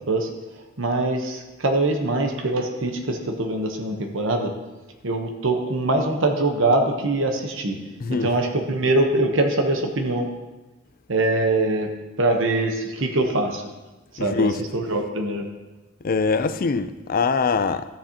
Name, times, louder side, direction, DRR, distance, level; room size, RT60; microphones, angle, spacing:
voice 1, 0.8-4.5 5.0-7.8 8.1-10.3 11.1-11.9 12.2-13.6 14.2-15.4, right 2 dB, 65° right, 1.0 m, -23 dB
voice 2, 8.0-8.3 14.2-14.6 16.0-17.9, left 4 dB, 45° left, 0.4 m, -23 dB
13.0 x 7.3 x 2.9 m
head